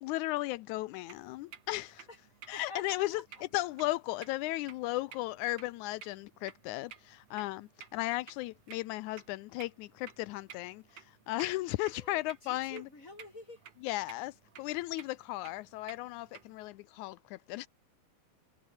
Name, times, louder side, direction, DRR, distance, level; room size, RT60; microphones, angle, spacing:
voice 1, 0.0-2.1 2.5-3.2 3.5-12.8 13.8-17.7, left 18 dB, 85° left, 2.1 m, -36 dB
sound 1, 1.1-16.7, right 8 dB, 60° right, 3.0 m, -55 dB
voice 2, 2.1-3.4 11.9-13.8, left 2 dB, 25° left, 6.4 m, -49 dB
omnidirectional pair, 3.4 m